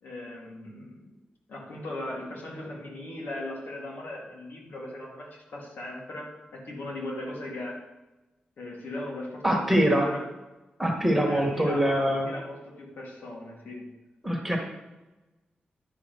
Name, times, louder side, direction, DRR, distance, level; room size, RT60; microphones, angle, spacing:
voice 1, 0.0-1.1 1.5-7.8 8.6-10.3 11.3-13.9, left 1 dB, 75° left, -2 dB, 2.8 m, -38 dB
voice 2, 9.4-10.1 10.8-12.3 14.2-14.6, equal, 5° right, 0 dB, 1.6 m, -23 dB
11.0 x 5.5 x 6.2 m, 1.1 s
wide cardioid pair, 160°, 3 cm